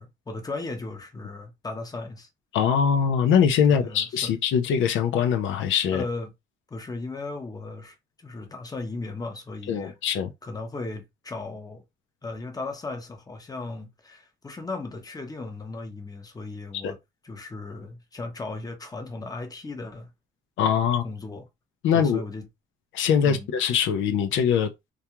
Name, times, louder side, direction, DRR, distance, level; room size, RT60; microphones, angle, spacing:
voice 1, 0.0-2.3 3.7-4.3 5.9-6.3 6.7-10.0 10.4-11.8 12.2-17.0 17.2-20.1 21.0-21.5 21.9-22.5 23.2-23.5, left 3 dB, 20° left, 0.8 m, -36 dB
voice 2, 2.5-6.0 9.7-10.3 16.8-16.9 20.6-21.0 21.8-22.2 22.9-24.7, left 7 dB, 75° left, 0.5 m, -22 dB
2.3 x 2.2 x 2.9 m
cardioid pair, 90°, 20 cm